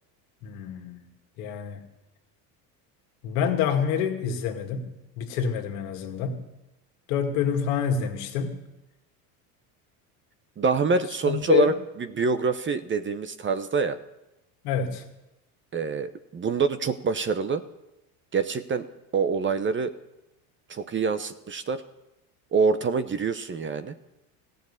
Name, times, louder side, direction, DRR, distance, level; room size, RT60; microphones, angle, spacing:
voice 1, 0.4-1.1 1.4-1.8 3.2-4.9 5.2-6.4 7.1-8.6 11.2-11.8 14.6-15.0, left 7 dB, 75° left, 4 dB, 2.1 m, -27 dB
voice 2, 10.6-11.7 12.1-14.0 15.7-17.6 18.3-18.9 19.1-20.0 20.7-21.8 22.5-23.9, right 5 dB, 25° right, 12 dB, 0.8 m, -25 dB
15.0 x 6.8 x 9.7 m, 0.96 s
supercardioid pair, 90°, 46 cm